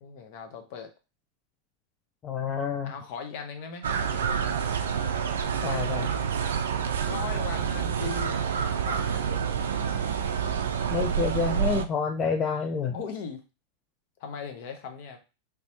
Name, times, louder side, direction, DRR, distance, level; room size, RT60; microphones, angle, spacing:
voice 1, 0.0-0.9 2.8-4.6 7.1-9.6 12.9-13.4 14.2-15.2, left 6 dB, 45° left, 5 dB, 0.8 m, -39 dB
voice 2, 2.2-2.9 5.6-6.1 10.9-13.0, left 5 dB, 25° left, 4 dB, 0.4 m, -28 dB
sound 1, 3.8-11.9, right 7 dB, 65° right, 0.3 m, -28 dB
3.4 x 3.1 x 2.9 m, 0.30 s
figure-of-eight pair, 90°, 0 cm